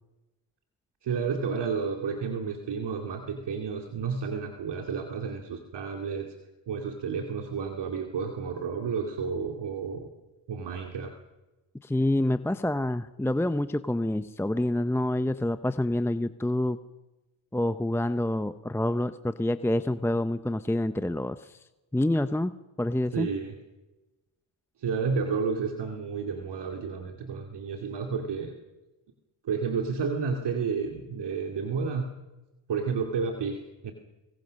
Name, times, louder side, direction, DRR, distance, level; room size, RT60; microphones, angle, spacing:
voice 1, 1.0-6.3 6.7-10.1 10.5-11.2 23.1-23.6 24.8-28.5 29.4-32.2 32.7-33.9, right 5 dB, 60° right, 4 dB, 2.6 m, -31 dB
voice 2, 11.8-16.8 17.5-21.6 21.9-22.5 22.8-23.3, left 1 dB, 5° left, 11 dB, 0.7 m, -27 dB
25.0 x 21.5 x 6.5 m, 1.1 s
cardioid pair, 85°, 47 cm